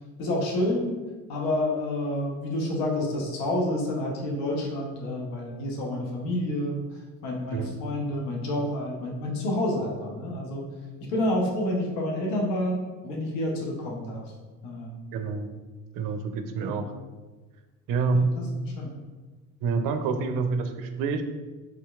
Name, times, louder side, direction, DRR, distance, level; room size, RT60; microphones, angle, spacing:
voice 1, 0.2-1.0 1.3-6.8 7.2-10.6 11.0-14.2 14.6-15.0 16.6-16.8 18.1-18.9, left 1 dB, 70° left, -1 dB, 0.9 m, -29 dB
voice 2, 15.1-15.5 15.9-16.9 17.9-18.4 19.6-21.2, right 4 dB, 50° right, 8 dB, 0.5 m, -27 dB
3.7 x 2.8 x 2.3 m, 1.3 s
hypercardioid pair, 65°, 43 cm